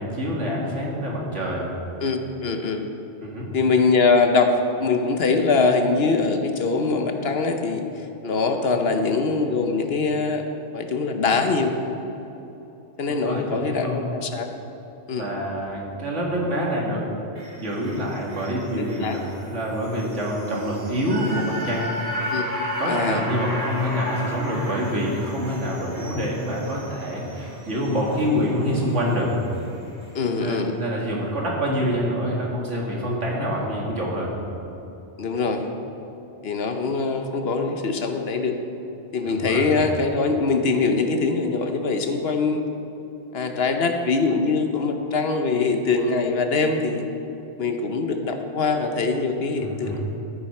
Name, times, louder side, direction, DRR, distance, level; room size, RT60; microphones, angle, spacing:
voice 1, 0.0-1.7 3.2-3.5 13.1-14.0 15.2-17.0 17.6-21.9 22.8-29.3 30.4-34.3 39.3-39.7 49.6-50.0, equal, 85° right, -3 dB, 2.4 m, -26 dB
voice 2, 2.0-2.9 3.5-7.8 8.2-10.4 10.7-11.7 13.0-14.5 15.1-15.3 18.8-19.2 22.3-22.4 22.9-23.2 30.1-30.8 35.2-35.7 36.4-38.6 39.1-42.6 43.3-47.1 47.6-50.0, left 4 dB, 60° left, 6 dB, 1.1 m, -23 dB
sound 1, 17.3-29.7 30.0-30.1, equal, 30° right, 2.5 m, -34 dB
14.0 x 9.7 x 4.4 m, 3.0 s
omnidirectional pair, 1.2 m